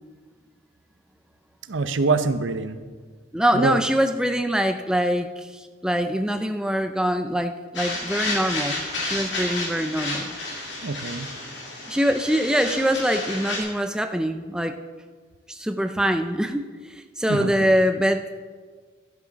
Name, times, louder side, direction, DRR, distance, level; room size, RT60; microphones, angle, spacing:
voice 1, 1.7-2.8 3.5-3.8 10.8-11.3 17.3-17.7, right 3 dB, 80° right, 11 dB, 0.7 m, -25 dB
voice 2, 3.3-10.3 11.9-14.8 15.5-16.6 17.2-18.3, equal, 5° right, 7 dB, 0.4 m, -24 dB
sound 1, 7.7-13.6, left 2 dB, 60° left, 2.6 m, -31 dB
12.0 x 11.0 x 4.0 m, 1.5 s
head